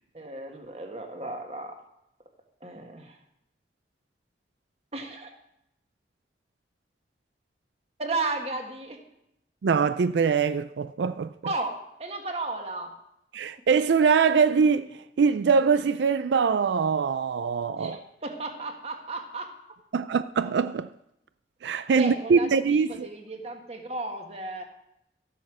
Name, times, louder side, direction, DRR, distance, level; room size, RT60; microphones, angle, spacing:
voice 1, 0.1-1.8 2.6-3.2 4.9-5.3 8.0-9.0 11.4-13.0 17.8-19.5 22.0-24.6, right 2 dB, 35° right, 1.6 m, -34 dB
voice 2, 9.6-11.3 13.3-18.0 19.9-20.9 21.6-23.1, right 5 dB, 85° right, 0.4 m, -23 dB
13.5 x 8.3 x 6.2 m
head